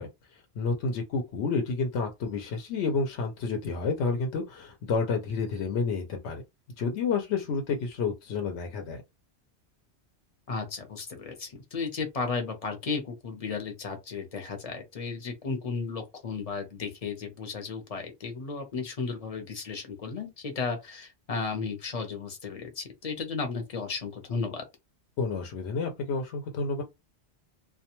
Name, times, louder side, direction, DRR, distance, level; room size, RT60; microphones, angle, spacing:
voice 1, 0.0-6.4 6.8-9.0 25.2-26.8, left 4 dB, 80° left, 0.9 m, -30 dB
voice 2, 10.5-24.6, left 4 dB, 40° left, 0.7 m, -34 dB
2.2 x 2.2 x 2.9 m
omnidirectional pair, 1.2 m